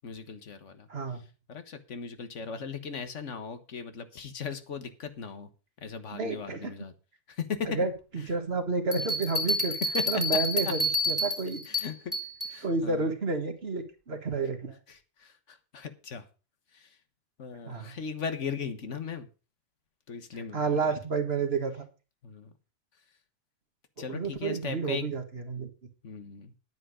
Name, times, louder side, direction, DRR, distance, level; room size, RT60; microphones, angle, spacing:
voice 1, 0.0-0.9 1.1-1.2 1.5-5.5 5.8-6.9 7.3-7.8 8.2-8.3 9.9-10.2 10.7-10.8 11.7-12.2 12.4-13.1 14.9-16.3 16.7-17.0 17.4-19.3 20.1-21.0 22.2-22.5 24.0-25.1 26.0-26.5, left 6 dB, 80° left, 9 dB, 1.6 m, -38 dB
voice 2, 0.9-1.2 6.1-6.7 7.7-9.8 10.1-11.6 12.6-14.8 17.6-17.9 20.5-21.8 24.0-25.7, right 4 dB, 60° right, 6 dB, 1.9 m, -30 dB
sound 1, 8.9-12.6, left 1 dB, ahead, 1.9 m, -29 dB
10.5 x 9.3 x 5.0 m, 0.34 s
omnidirectional pair, 1.2 m